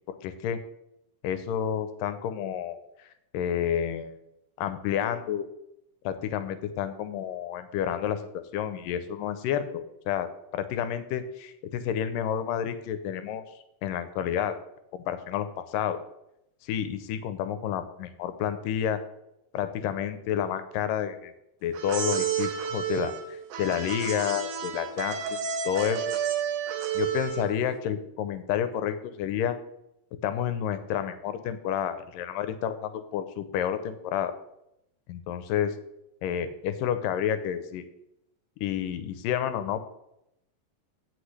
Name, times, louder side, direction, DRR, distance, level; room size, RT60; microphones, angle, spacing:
voice 1, 0.1-0.6 1.2-2.8 3.3-4.2 4.6-5.5 6.0-8.3 8.5-13.4 13.8-14.6 14.9-16.0 16.6-19.0 19.5-21.3 21.6-26.2 26.9-29.6 30.2-34.3 35.1-35.8 36.2-37.8 38.6-39.8, left 9 dB, 85° left, 11 dB, 2.3 m, -30 dB
sound 1, 21.7-27.6, right 8 dB, 75° right, 2.7 m, -31 dB
16.0 x 6.1 x 3.3 m, 0.82 s
omnidirectional pair, 4.0 m